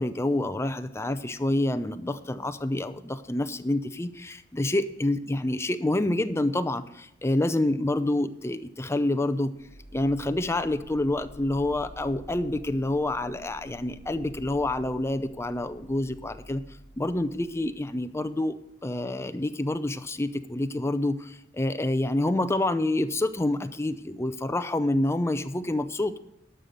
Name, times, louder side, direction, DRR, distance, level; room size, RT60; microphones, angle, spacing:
voice 1, 0.0-9.5 9.9-16.6 17.0-18.5 18.8-26.2, left 1 dB, 15° left, 11 dB, 0.5 m, -27 dB
sound 1, 9.6-18.3, left 1 dB, 25° right, 3.9 m, -49 dB
11.5 x 6.9 x 6.5 m, 0.81 s
head